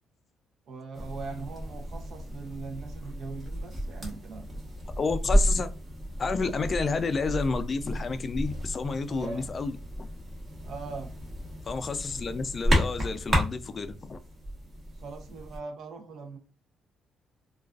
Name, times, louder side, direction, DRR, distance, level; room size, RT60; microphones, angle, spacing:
voice 1, 0.7-4.7 9.1-9.5 10.6-11.1 15.0-16.4, right 4 dB, 70° right, 0.6 m, -41 dB
sound 1, 0.9-15.6, equal, 35° right, 1.0 m, -32 dB
voice 2, 5.0-5.7 6.2-10.1 11.7-14.2, left 4 dB, 40° left, 0.3 m, -30 dB
2.3 x 2.3 x 2.3 m
cardioid pair, 90°, 0 cm